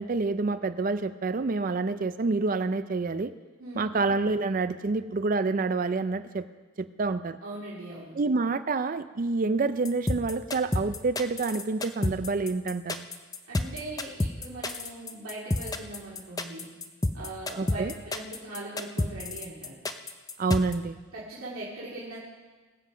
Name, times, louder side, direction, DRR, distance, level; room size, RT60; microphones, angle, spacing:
voice 1, 0.0-3.3 3.7-6.4 6.8-7.4 8.2-13.1 17.6-17.9 20.4-21.0, right 3 dB, 40° right, 12 dB, 0.4 m, -28 dB
voice 2, 7.4-8.2 13.5-16.7 17.1-19.7 21.1-22.2, right 2 dB, 75° right, -7 dB, 2.5 m, -40 dB
sound 1, 9.9-20.7, left 2 dB, 15° left, 0.5 m, -29 dB
21.5 x 7.7 x 5.1 m, 1.3 s
head